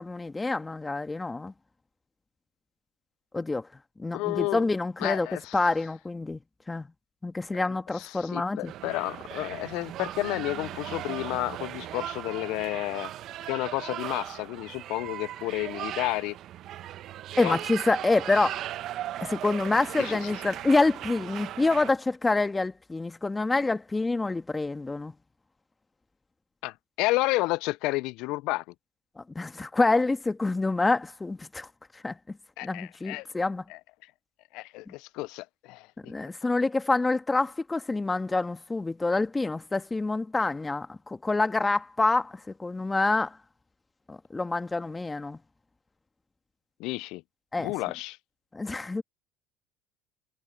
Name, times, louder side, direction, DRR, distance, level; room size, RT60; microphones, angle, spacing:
voice 1, 0.0-1.5 3.3-3.7 4.0-5.3 5.5-6.4 6.7-6.9 7.2-8.7 17.4-18.7 19.2-25.1 29.2-31.7 31.9-32.4 32.6-33.6 34.9-35.0 36.1-43.4 44.1-45.4 47.5-47.7 48.5-49.0, left 3 dB, 15° left, 1.8 m, -27 dB
voice 2, 4.1-4.6 5.0-5.5 7.9-13.1 13.5-16.4 17.4-17.6 20.0-20.2 26.6-28.6 32.6-33.3 33.7-33.8 34.5-35.9 46.8-47.2 47.6-48.2, left 21 dB, 70° left, 0.5 m, -31 dB
sound 1, 8.7-21.9, right 12 dB, 55° right, 1.0 m, -38 dB
hypercardioid pair, 75°, 0 cm